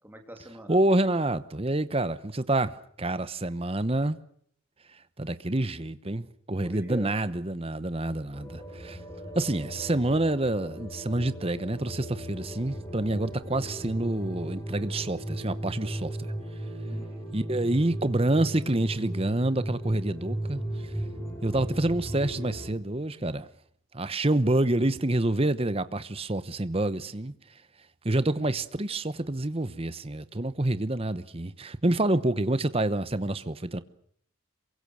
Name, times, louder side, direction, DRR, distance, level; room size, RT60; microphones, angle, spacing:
voice 1, 0.0-0.8 6.6-7.1 16.8-17.2, equal, 10° right, 3.1 m, -43 dB
voice 2, 0.7-4.2 5.2-9.0 9.3-16.3 17.3-20.6 21.4-23.5 23.9-27.3 28.0-33.8, right 1 dB, 30° right, 1.0 m, -27 dB
sound 1, 8.3-22.7, right 1 dB, 15° left, 4.1 m, -36 dB
27.0 x 23.5 x 6.4 m
head